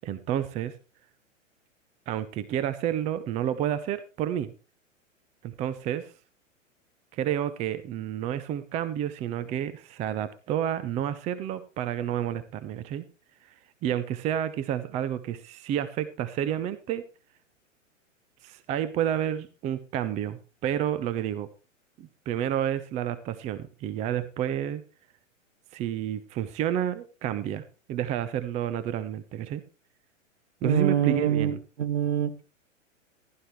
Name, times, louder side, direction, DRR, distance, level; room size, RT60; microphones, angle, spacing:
voice 1, 0.0-0.7 2.1-4.5 5.4-6.1 7.1-13.0 13.8-17.0 18.4-21.5 22.0-24.8 25.7-29.6 30.6-31.6, right 10 dB, 15° right, 14 dB, 0.6 m, -30 dB
voice 2, 30.6-32.4, right 8 dB, 60° right, 13 dB, 1.4 m, -25 dB
15.0 x 11.5 x 3.1 m, 0.33 s
figure-of-eight pair, 105°, 39 cm